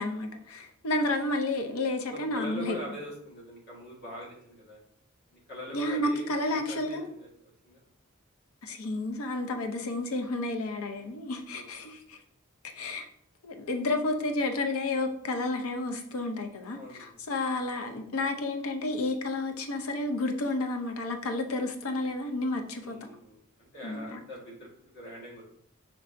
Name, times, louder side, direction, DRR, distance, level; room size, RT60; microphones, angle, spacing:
voice 1, 0.0-2.8 5.7-7.1 8.6-12.2 12.7-13.1 13.4-23.1 23.8-24.2, left 2 dB, 80° left, 0.6 m, -31 dB
voice 2, 2.1-4.8 5.3-7.3 7.6-7.8 10.9-11.2 11.8-11.9 16.7-17.2 22.8-25.4, equal, 50° left, 1.6 m, -43 dB
5.1 x 3.3 x 2.5 m
head